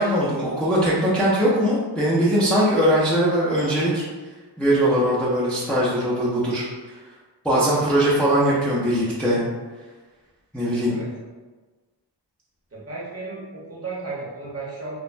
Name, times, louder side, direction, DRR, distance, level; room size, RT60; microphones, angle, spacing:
voice 1, 0.0-4.0 4.6-7.0 7.4-9.4 10.5-11.0, equal, 5° left, -8 dB, 0.5 m, -21 dB
voice 2, 12.7-15.0, right 3 dB, 30° right, -6 dB, 0.8 m, -34 dB
3.2 x 2.0 x 2.5 m, 1.3 s
wide cardioid pair, 100°, 45 cm